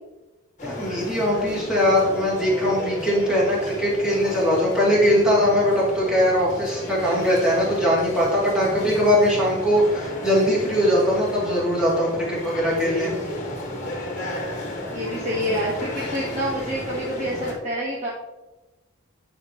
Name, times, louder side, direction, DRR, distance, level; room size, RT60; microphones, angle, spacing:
sound 1, 0.6-17.5, left 1 dB, 35° left, 1.6 m, -33 dB
voice 1, 0.6-13.1, equal, 5° right, -7 dB, 2.5 m, -21 dB
voice 2, 14.9-18.1, equal, 35° right, -6 dB, 1.3 m, -27 dB
10.5 x 5.1 x 2.9 m, 1.1 s
head